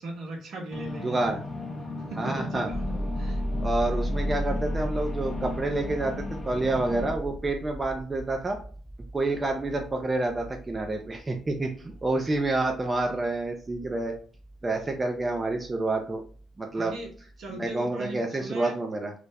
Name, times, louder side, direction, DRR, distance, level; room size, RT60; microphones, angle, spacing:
voice 1, 0.0-1.3 2.1-2.8 3.1-3.4 16.7-17.1 17.4-18.7, right 2 dB, 60° right, 0.8 m, -38 dB
sound 1, 0.7-7.1, left 3 dB, 40° left, 0.6 m, -36 dB
voice 2, 1.0-1.4 2.2-2.7 3.6-8.6 9.1-14.1 14.6-16.2 16.6-17.0 17.5-19.1, right 2 dB, 25° right, 0.4 m, -28 dB
sound 2, 2.7-16.5 16.8-17.8, equal, ahead, 0.7 m, -36 dB
2.4 x 2.0 x 3.2 m
hypercardioid pair, 50°, 0 cm